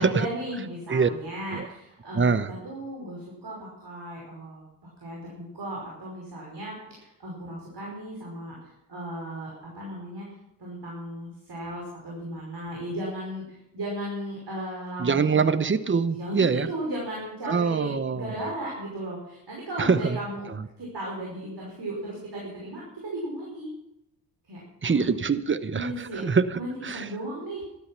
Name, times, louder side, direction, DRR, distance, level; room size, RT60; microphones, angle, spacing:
voice 1, 0.0-4.6 5.0-9.5 9.7-10.3 10.6-15.5 16.1-20.5 20.8-23.7 24.4-25.0 25.7-26.3 26.5-27.6, right 1 dB, 55° right, -3 dB, 5.6 m, -36 dB
voice 2, 2.1-2.5 15.0-16.7 17.5-18.3 19.8-20.2 24.8-27.1, right 5 dB, 25° right, 14 dB, 1.0 m, -24 dB
12.5 x 12.0 x 6.0 m, 0.87 s
hypercardioid pair, 45°, 48 cm